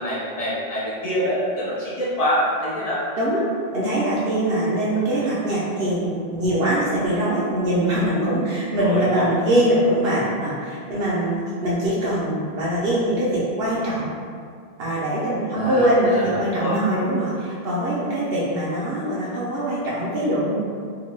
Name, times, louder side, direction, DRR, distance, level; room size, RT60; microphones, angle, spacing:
voice 1, 0.0-3.0 8.8-9.2 15.5-16.8, equal, 50° left, -7 dB, 0.5 m, -25 dB
voice 2, 3.7-14.1 14.8-20.5, right 1 dB, 75° right, -8 dB, 0.8 m, -22 dB
2.9 x 2.2 x 3.1 m, 2.2 s
omnidirectional pair, 1.0 m